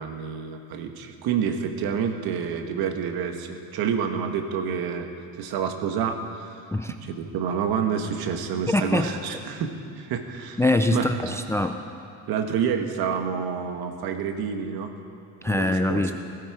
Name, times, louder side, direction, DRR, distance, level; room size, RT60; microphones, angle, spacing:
voice 1, 0.0-5.1 5.4-6.6 7.0-10.6 10.9-11.1 12.3-14.9 15.5-16.1, right 7 dB, 70° right, 6 dB, 1.5 m, -28 dB
voice 2, 8.7-9.1 10.6-11.8 15.4-16.1, left 2 dB, 5° left, 6 dB, 0.4 m, -23 dB
17.5 x 16.5 x 4.8 m, 2.5 s
cardioid pair, 145°, 38 cm